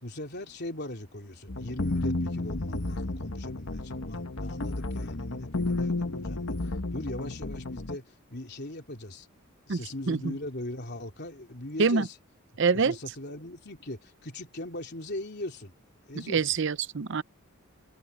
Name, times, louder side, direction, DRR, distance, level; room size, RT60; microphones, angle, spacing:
voice 1, 0.0-6.6 6.9-9.3 9.7-12.1 12.8-15.7 16.1-16.5, left 1 dB, 50° left, 3.5 m, -39 dB
sound 1, 1.5-8.0, left 2 dB, 65° left, 1.4 m, -32 dB
voice 2, 12.6-12.9 16.3-17.2, right 5 dB, 60° right, 0.6 m, -25 dB
head